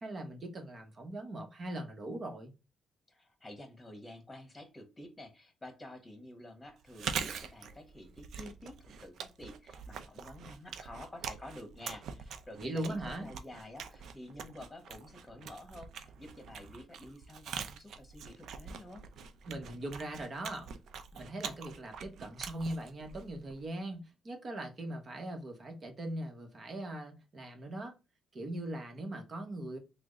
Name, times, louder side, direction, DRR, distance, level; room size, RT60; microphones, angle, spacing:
voice 1, 0.0-2.5 12.6-13.3 19.5-20.7 21.1-27.9 28.3-29.8, right 1 dB, 40° right, 0.9 m, -40 dB
voice 2, 3.1-19.0, left 1 dB, 15° left, 1.2 m, -50 dB
Chewing mastication, 6.8-23.7, right 6 dB, 70° right, 0.4 m, -44 dB
3.4 x 2.1 x 3.7 m
cardioid pair, 90°, 0 cm